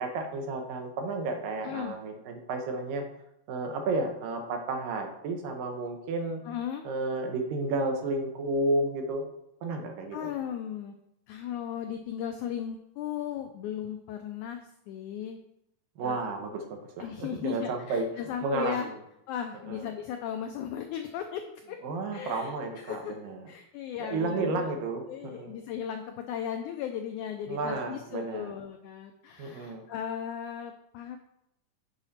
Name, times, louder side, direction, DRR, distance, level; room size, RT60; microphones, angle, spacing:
voice 1, 0.0-3.0 3.5-6.4 6.8-9.2 9.6-10.2 16.0-18.1 18.4-18.9 19.7-19.8 21.8-23.4 24.0-25.6 27.5-28.5 29.4-29.9, right 2 dB, 80° right, 4 dB, 2.6 m, -32 dB
voice 2, 1.6-2.0 6.4-6.9 10.1-11.0 11.3-15.4 16.0-16.2 17.0-18.9 19.3-21.8 22.1-23.1 23.5-24.7 25.1-31.2, left 9 dB, 85° left, 6 dB, 1.7 m, -36 dB
8.0 x 4.9 x 4.2 m, 0.81 s
omnidirectional pair, 4.1 m